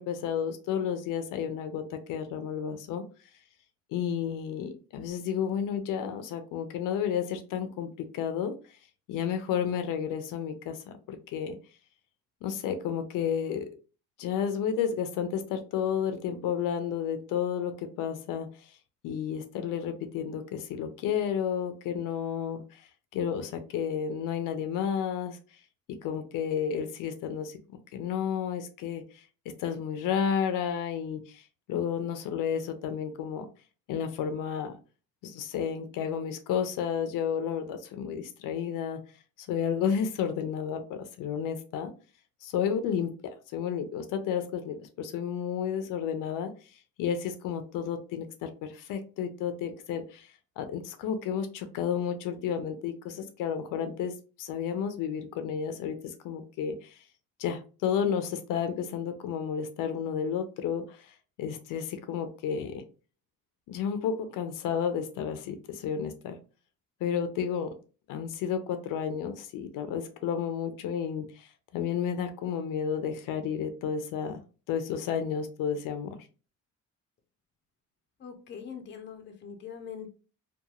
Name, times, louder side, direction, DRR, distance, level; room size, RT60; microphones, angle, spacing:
voice 1, 0.0-3.0 3.9-8.5 9.1-10.8 11.1-11.6 12.4-13.7 14.2-18.5 19.0-22.8 23.1-25.4 25.9-27.6 27.9-29.0 29.6-31.4 31.7-33.5 33.9-34.8 35.2-39.0 39.4-41.9 42.4-46.5 47.0-50.3 50.6-57.0 57.4-62.8 63.7-66.3 67.0-67.7 68.1-74.4 74.7-76.2, left 8 dB, 90° left, 8 dB, 0.6 m, -31 dB
voice 2, 78.2-80.1, left 7 dB, 35° left, 6 dB, 0.5 m, -42 dB
2.9 x 2.3 x 2.3 m, 0.35 s
cardioid pair, 135°, 31 cm